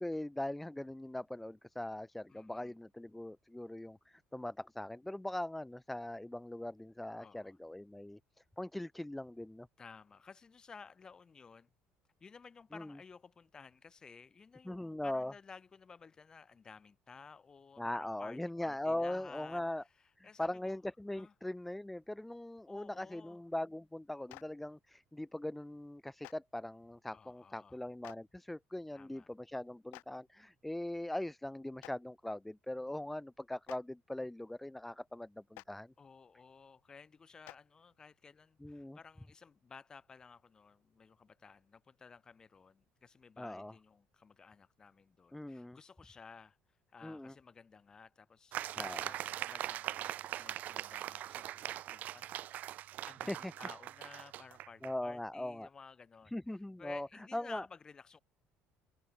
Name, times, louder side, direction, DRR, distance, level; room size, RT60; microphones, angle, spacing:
voice 1, 0.0-8.2 8.6-9.7 12.7-13.0 14.7-15.3 17.8-19.8 20.2-35.9 38.6-39.0 43.4-43.7 45.3-45.8 47.0-47.3 48.8-49.0 53.3-53.5 54.8-55.7 56.3-57.1 57.3-57.7, left 1 dB, 5° left, 0.6 m, -41 dB
voice 2, 2.3-2.8 7.2-7.6 9.8-11.7 12.2-19.6 20.2-20.8 21.1-21.3 22.6-23.4 27.1-27.8 28.9-29.3 36.0-46.6 46.9-52.8 53.0-58.2, left 5 dB, 20° left, 3.0 m, -55 dB
Clapping, 24.3-24.4 26.2-26.3 28.0-28.2 29.9-30.0 31.8-31.9 33.6-33.8 35.5-35.6 37.4-37.6, left 24 dB, 80° left, 1.7 m, -50 dB
sound 1, 48.5-54.9, right 13 dB, 45° right, 2.1 m, -41 dB
cardioid pair, 165°, 4 cm